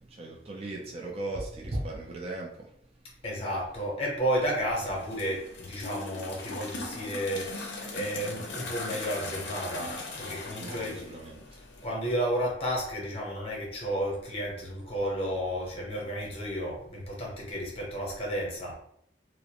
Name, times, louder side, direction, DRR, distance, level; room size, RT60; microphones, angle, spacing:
voice 1, 0.2-2.5 10.6-11.4, right 2 dB, 35° right, -1 dB, 0.3 m, -36 dB
voice 2, 3.2-11.1 11.8-18.7, equal, 35° left, -2 dB, 0.7 m, -32 dB
sound 1, 4.8-11.9, left 3 dB, 70° left, 0.5 m, -39 dB
2.4 x 2.0 x 2.8 m, 0.69 s
head